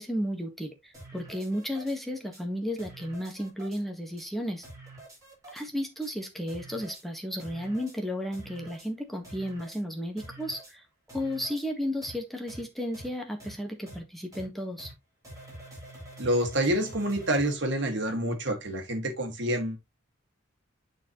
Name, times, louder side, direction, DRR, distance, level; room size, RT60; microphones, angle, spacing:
voice 1, 0.0-4.6 5.5-10.8 11.1-14.9, equal, ahead, 1.5 m, -33 dB
sound 1, 0.9-2.0 2.3-2.4 2.8-3.8 4.2-4.3 4.6-5.7 6.0-6.1 6.5-7.0 7.4-8.0 8.3-8.9 9.2-9.8 10.2-10.7 11.1-11.7 12.0-12.1 12.5-12.6 12.9-13.1 13.4-13.5 13.9-14.0 14.3-14.4 14.8-14.9 15.2-17.6, right 1 dB, 15° right, 5.1 m, -46 dB
voice 2, 16.2-19.8, right 1 dB, 65° right, 2.0 m, -27 dB
9.5 x 4.6 x 3.0 m
head